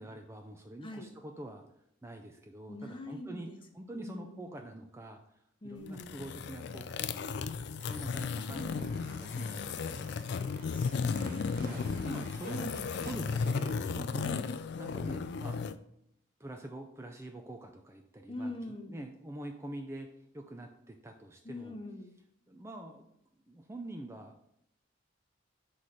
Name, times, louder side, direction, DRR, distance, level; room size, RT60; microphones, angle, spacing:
voice 1, 0.0-1.6 2.0-3.5 3.7-7.6 7.9-10.2 11.6-12.7 13.0-14.3 14.7-15.7 16.4-21.8 22.5-23.1 23.5-24.3, right 1 dB, 15° right, 4 dB, 0.4 m, -45 dB
voice 2, 2.7-3.6 3.9-4.5 5.6-6.2 10.6-11.8 12.6-12.8 14.2-14.5 18.3-19.0 21.4-22.1, left 1 dB, 25° left, 4 dB, 0.8 m, -43 dB
sound 1, 5.9-15.8, left 5 dB, 55° left, 0.3 m, -35 dB
sound 2, 7.8-13.5, right 2 dB, 50° right, 1.0 m, -52 dB
6.2 x 3.2 x 5.5 m, 0.75 s
head